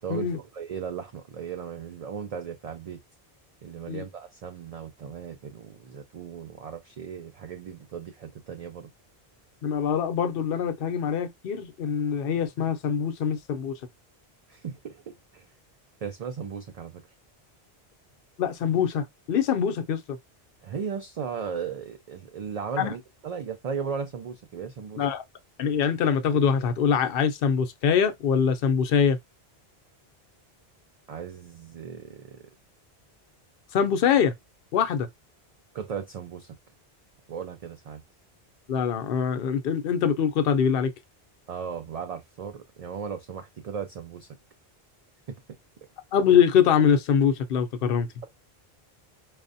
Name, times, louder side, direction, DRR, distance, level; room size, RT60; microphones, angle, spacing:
voice 1, 0.0-3.0 3.6-8.9 14.5-15.4 16.0-17.0 20.6-25.1 31.1-32.5 35.7-36.6 37.3-38.0 41.5-44.3 45.3-45.4, right 6 dB, 55° right, 0.4 m, -36 dB
voice 2, 9.6-13.8 18.4-20.2 22.8-22.9 25.0-25.2 25.6-29.2 33.7-34.3 34.7-35.1 38.7-40.9 46.1-48.3, left 7 dB, 65° left, 0.8 m, -24 dB
4.7 x 2.1 x 2.6 m
omnidirectional pair, 1.1 m